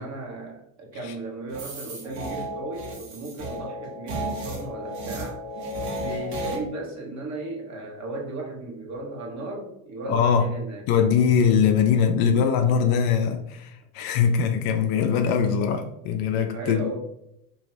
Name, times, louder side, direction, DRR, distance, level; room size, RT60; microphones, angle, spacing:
voice 1, 0.0-5.4 6.0-10.8 16.5-17.0, right 2 dB, 35° right, 0 dB, 1.0 m, -35 dB
sound 1, 1.5-6.6, right 1 dB, 60° right, 1.1 m, -33 dB
voice 2, 10.1-10.5 10.9-16.8, left 7 dB, 50° left, 5 dB, 0.6 m, -21 dB
2.9 x 2.7 x 3.2 m, 0.78 s
hypercardioid pair, 75°, 45 cm